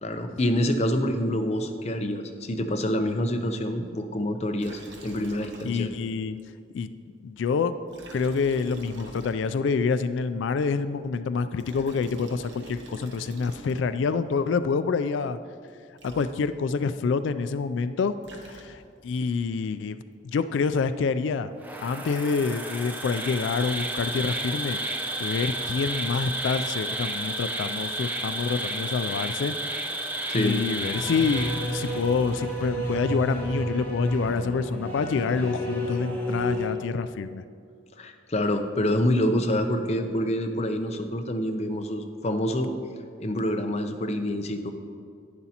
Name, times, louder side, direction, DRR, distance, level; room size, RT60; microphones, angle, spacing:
voice 1, 0.0-5.9 30.3-30.6 38.0-42.7 43.2-44.7, left 1 dB, 35° left, 6 dB, 0.6 m, -27 dB
Liquid, 4.6-6.1 6.4-6.5 7.9-9.8 11.4-14.1 15.7-15.8 16.0-16.8 18.0-19.1, right 1 dB, 75° right, 1.1 m, -46 dB
voice 2, 5.6-6.4 6.7-6.9 7.2-7.8 8.1-15.4 16.0-18.1 18.4-21.5 21.8-24.8 25.2-29.5 29.8-30.0 30.3-37.4, left 5 dB, 80° left, 12 dB, 0.3 m, -27 dB
Insect, 21.6-32.4, right 2 dB, 10° right, 0.7 m, -32 dB
sound 1, 30.9-36.7, equal, 10° left, 1.3 m, -31 dB
11.0 x 10.5 x 2.9 m, 2.3 s
head